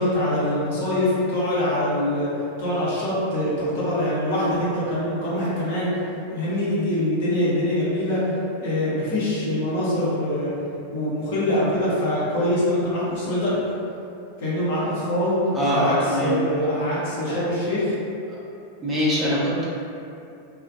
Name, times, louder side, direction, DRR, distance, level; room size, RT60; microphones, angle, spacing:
voice 1, 0.0-2.3 2.6-5.9 6.3-8.2 8.6-10.5 10.9-13.6 14.4-15.4 15.7-18.0, left 1 dB, 55° left, -8 dB, 0.8 m, -24 dB
voice 2, 15.5-16.4 17.3-17.4 18.8-19.6, equal, 15° right, -9 dB, 0.6 m, -23 dB
2.4 x 2.1 x 2.5 m, 2.7 s
figure-of-eight pair, 90°, 0 cm